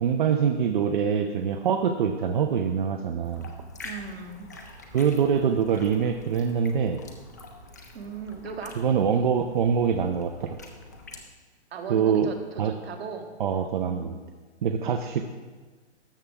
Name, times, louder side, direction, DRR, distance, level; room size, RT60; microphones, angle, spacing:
voice 1, 0.0-3.5 4.9-7.0 8.8-10.6 11.9-12.3 12.6-12.7 13.4-14.1 14.6-15.2, right 7 dB, 45° right, 6 dB, 0.5 m, -24 dB
sound 1, 3.2-11.2, left 2 dB, 15° left, 0.3 m, -46 dB
voice 2, 3.8-4.5 7.9-8.8 11.7-14.2, right 5 dB, 60° right, 5 dB, 1.4 m, -38 dB
13.0 x 6.9 x 3.5 m, 1.4 s
hypercardioid pair, 155°, 34 cm